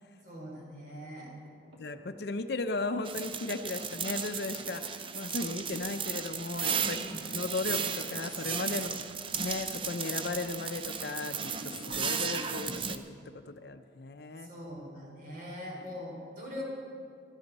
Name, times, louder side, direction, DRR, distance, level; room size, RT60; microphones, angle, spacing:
voice 1, 0.2-1.3 6.8-7.3 8.7-9.0 14.4-16.6, left 1 dB, 50° right, -3 dB, 3.9 m, -42 dB
sound 1, 1.4-2.8 4.9-10.0 10.4-10.6 11.3-12.9, right 1 dB, 80° right, 2.7 m, -51 dB
voice 2, 1.8-7.0 7.3-9.0 9.4-13.2 13.5-14.5, left 3 dB, 60° left, 9 dB, 0.5 m, -36 dB
sound 2, 3.0-13.0, right 6 dB, 30° right, 0.5 m, -35 dB
16.5 x 12.0 x 4.1 m, 2.4 s
head